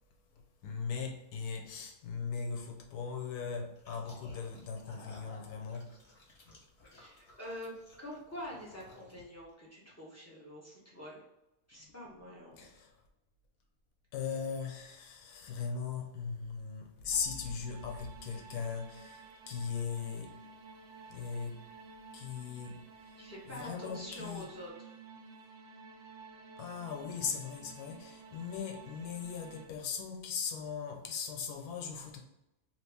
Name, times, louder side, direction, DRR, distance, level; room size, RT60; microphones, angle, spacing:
voice 1, 0.6-6.0 12.6-13.0 14.1-20.4 21.1-21.7 22.1-23.2 23.5-24.5 26.6-32.2, left 6 dB, 90° left, 1.2 m, -39 dB
sound 1, 3.8-9.5, left 2 dB, 45° left, 1.2 m, -56 dB
voice 2, 6.9-7.7 8.0-11.2 11.7-12.7 23.2-24.9, equal, 15° left, 0.7 m, -46 dB
sound 2, 11.7-12.7 13.0-13.1 13.4-13.6 14.8-15.9 16.4-18.7, left 5 dB, 70° left, 1.1 m, -54 dB
sound 3, 17.1-29.7, right 4 dB, 70° right, 1.0 m, -53 dB
2.9 x 2.8 x 3.3 m
omnidirectional pair, 1.6 m